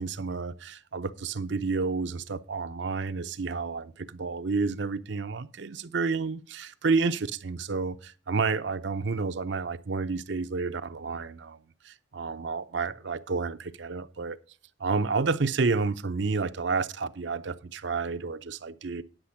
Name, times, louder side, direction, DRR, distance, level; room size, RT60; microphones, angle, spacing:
voice 1, 0.0-11.6 11.8-14.4 14.8-19.0, right 4 dB, 65° right, 0.6 m, -30 dB
10.0 x 6.7 x 5.7 m
head